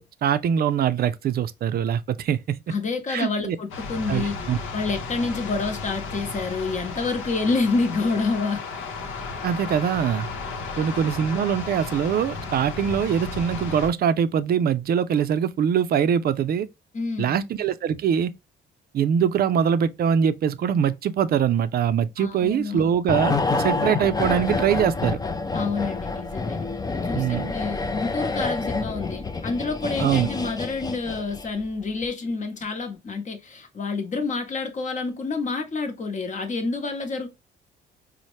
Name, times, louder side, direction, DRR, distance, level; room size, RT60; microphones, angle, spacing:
voice 1, 0.0-2.6 3.1-3.6 4.1-4.6 9.4-10.3 10.8-16.7 17.2-18.3 18.9-25.2 27.1-27.5 30.0-30.3, right 8 dB, 50° right, 0.4 m, -23 dB
voice 2, 2.7-4.4 4.7-8.6 10.7-10.8 16.9-17.4 22.2-23.0 25.5-26.6 26.9-37.3, left 4 dB, 40° left, 0.9 m, -28 dB
sound 1, 3.7-13.9, left 4 dB, 80° left, 0.7 m, -34 dB
sound 2, 23.1-31.6 31.9-32.1, left 3 dB, 20° left, 0.5 m, -28 dB
4.1 x 2.1 x 3.0 m
cardioid pair, 90°, 20 cm